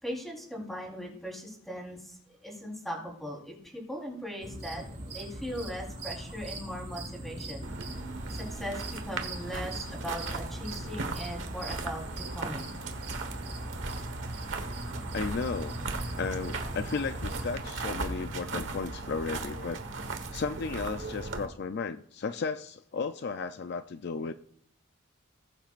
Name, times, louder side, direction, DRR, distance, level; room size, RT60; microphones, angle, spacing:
voice 1, 0.0-7.7 8.4-12.0 12.3-12.7, equal, ahead, -2 dB, 3.8 m, -39 dB
sound 1, 4.4-17.5, right 1 dB, 40° right, 5.1 m, -41 dB
sound 2, 7.6-21.5, right 3 dB, 65° right, 1.3 m, -37 dB
voice 2, 15.1-15.8 16.2-19.8 20.3-24.3, left 4 dB, 55° left, 10 dB, 0.4 m, -34 dB
19.5 x 9.0 x 2.5 m, 0.65 s
head